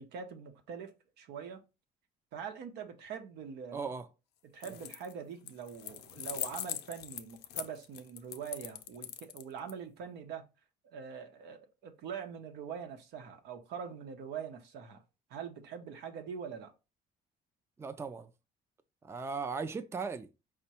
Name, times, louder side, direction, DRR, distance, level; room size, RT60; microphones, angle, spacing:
voice 1, 0.0-1.6 2.3-3.9 4.5-10.5 10.8-15.0 15.3-16.7, right 7 dB, 85° right, 0.9 m, -43 dB
voice 2, 3.7-4.1 4.7-4.8 17.8-18.3 19.0-20.3, right 5 dB, 15° right, 0.4 m, -37 dB
sound 1, 4.5-5.1 5.5-9.7, left 12 dB, 80° left, 0.5 m, -41 dB
4.9 x 2.2 x 4.2 m
cardioid pair, 110°, 17 cm